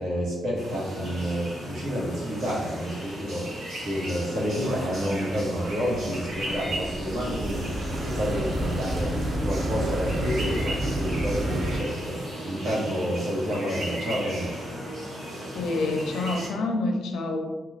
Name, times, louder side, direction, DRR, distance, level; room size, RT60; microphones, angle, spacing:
voice 1, 0.0-14.6, equal, 85° right, -6 dB, 1.0 m, -29 dB
sound 1, 0.5-16.5, right 1 dB, 60° right, 1.1 m, -36 dB
sound 2, 4.6-11.8, right 1 dB, 40° right, 0.4 m, -31 dB
voice 2, 15.5-17.4, left 2 dB, 90° left, 3 dB, 0.4 m, -27 dB
2.4 x 2.2 x 3.1 m, 1.2 s
wide cardioid pair, 170°, 0 cm